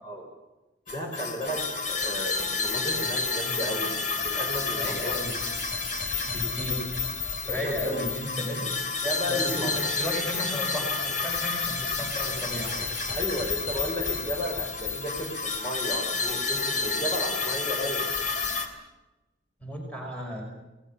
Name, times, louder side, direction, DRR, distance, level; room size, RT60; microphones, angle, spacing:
sound 1, 0.9-18.7, left 4 dB, 45° left, 3.1 m, -30 dB
voice 1, 0.9-5.1 7.4-8.0 9.0-9.8 13.1-18.1, equal, 25° left, 1 dB, 5.8 m, -34 dB
voice 2, 4.8-5.3 6.3-6.9 7.5-8.7 9.3-13.2 19.6-20.4, left 1 dB, 5° left, 0 dB, 5.7 m, -34 dB
28.0 x 18.5 x 7.4 m, 1.0 s
head